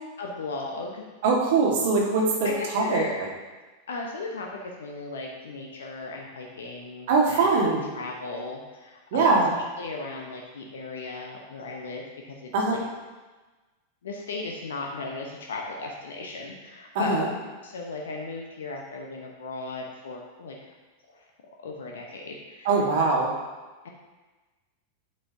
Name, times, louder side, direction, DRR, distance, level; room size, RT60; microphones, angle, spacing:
voice 1, 0.2-1.0 2.4-3.1 3.9-7.5 7.9-12.8 14.0-20.7 21.1-21.2 21.6-22.7, left 3 dB, 65° left, 0 dB, 1.0 m, -36 dB
voice 2, 1.2-2.5 2.7-3.0 7.1-7.9 9.1-9.5 12.5-12.8 17.0-17.3 22.7-23.3, right 4 dB, 50° right, -1 dB, 1.7 m, -22 dB
8.6 x 7.9 x 2.8 m, 1.2 s
figure-of-eight pair, 90°, 0 cm